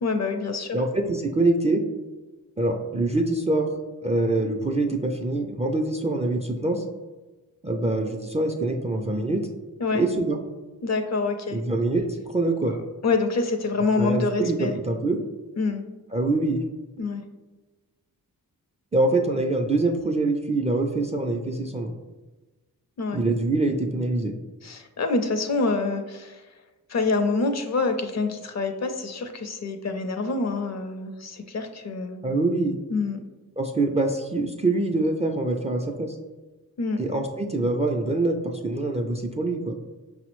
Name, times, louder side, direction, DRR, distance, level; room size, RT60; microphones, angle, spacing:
voice 1, 0.0-0.8 9.8-10.0 10.8-11.6 13.0-14.8 15.6-15.8 17.0-17.2 23.0-23.2 24.6-26.4 26.9-32.2 32.9-33.2 36.8-37.0, left 3 dB, 45° left, 7 dB, 0.5 m, -26 dB
voice 2, 0.7-1.8 2.6-3.7 4.0-6.8 7.6-9.4 9.9-10.4 11.5-12.8 14.0-15.2 16.1-16.6 18.9-21.9 23.1-24.3 32.2-32.8 33.6-36.2 37.0-39.7, right 2 dB, 20° right, 3 dB, 0.3 m, -24 dB
5.4 x 2.0 x 3.0 m, 1.2 s
cardioid pair, 50°, 38 cm